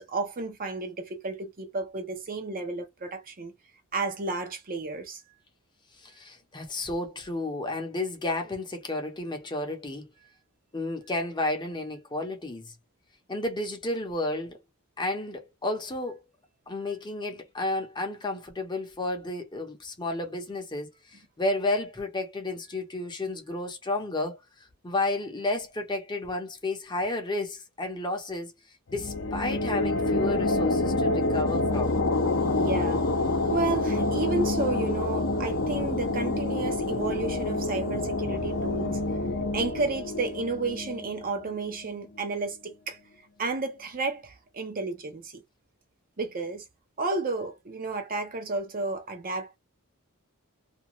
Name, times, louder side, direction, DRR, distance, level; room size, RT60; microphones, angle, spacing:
voice 1, 0.0-3.5 3.9-5.2 32.6-33.1 33.5-39.0 39.5-43.0 43.4-45.4 46.2-46.6 47.0-49.5, right 3 dB, 40° right, 0.7 m, -32 dB
voice 2, 6.0-10.1 10.7-12.7 13.3-14.6 15.0-16.2 16.7-24.4 24.8-28.5 28.9-32.0, left 2 dB, 20° left, 0.7 m, -32 dB
sound 1, 28.9-42.3, left 2 dB, 60° left, 0.7 m, -27 dB
2.5 x 2.3 x 2.9 m
head